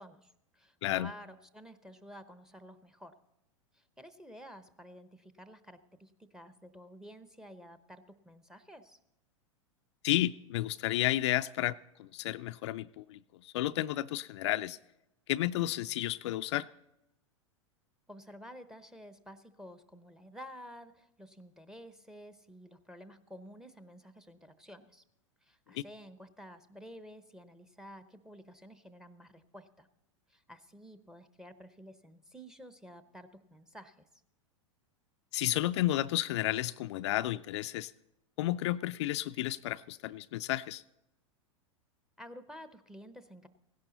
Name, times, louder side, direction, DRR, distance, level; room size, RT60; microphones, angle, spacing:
voice 1, 0.0-3.2 3.7-9.0 18.1-25.0 25.4-29.9 30.3-34.2 42.2-43.5, equal, 5° right, 12 dB, 0.9 m, -51 dB
voice 2, 0.8-1.1 10.0-14.8 15.3-16.7 25.7-25.9 35.3-37.9 38.4-40.8, left 15 dB, 60° left, 11 dB, 0.4 m, -32 dB
16.5 x 11.5 x 4.0 m, 0.88 s
hypercardioid pair, 100°, 16 cm